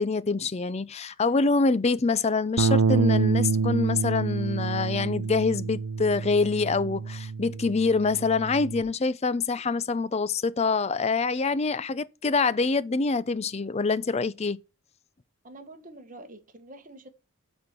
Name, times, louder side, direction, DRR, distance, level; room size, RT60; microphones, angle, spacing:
voice 1, 0.0-14.6, left 4 dB, 30° left, 0.4 m, -25 dB
Bass guitar, 2.6-8.8, right 5 dB, 90° right, 0.6 m, -27 dB
voice 2, 15.4-17.1, right 2 dB, 35° right, 1.4 m, -46 dB
10.0 x 4.4 x 6.8 m
head